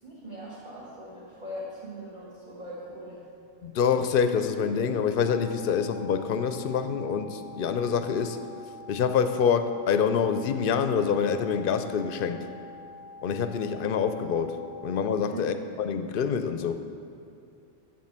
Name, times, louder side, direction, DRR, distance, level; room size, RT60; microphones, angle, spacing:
voice 1, 0.0-3.2 15.3-15.5, equal, 40° right, -8 dB, 1.8 m, -40 dB
voice 2, 3.6-8.4 8.9-12.4 13.2-16.8, left 6 dB, 60° left, 9 dB, 0.7 m, -26 dB
sound 1, 5.2-15.2, left 3 dB, 90° right, 2.9 m, -46 dB
7.5 x 7.5 x 7.3 m, 2.6 s
omnidirectional pair, 1.2 m